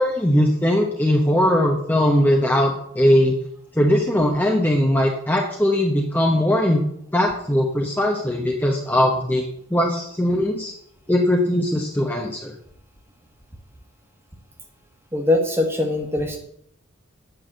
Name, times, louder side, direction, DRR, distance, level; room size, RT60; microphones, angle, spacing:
voice 1, 0.0-3.4 3.7-6.8 7.1-10.7 11.1-12.5, left 1 dB, 10° left, 0 dB, 0.9 m, -20 dB
voice 2, 15.1-16.4, left 2 dB, 10° right, 4 dB, 1.5 m, -21 dB
8.8 x 6.2 x 7.9 m, 0.73 s
head